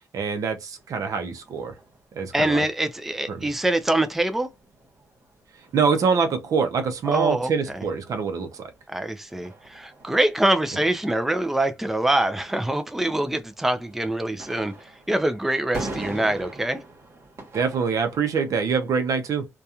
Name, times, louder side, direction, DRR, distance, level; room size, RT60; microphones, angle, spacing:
voice 1, 0.1-1.7 2.1-2.6 3.3-3.4 5.7-8.7 17.5-19.5, right 5 dB, 70° right, 0.6 m, -24 dB
sound 1, 0.7-18.6, right 2 dB, 45° right, 1.2 m, -44 dB
voice 2, 2.3-4.5 7.1-7.8 8.9-14.7 15.1-16.8, right 1 dB, 5° right, 0.4 m, -24 dB
2.8 x 2.3 x 2.3 m
cardioid pair, 85°, 6 cm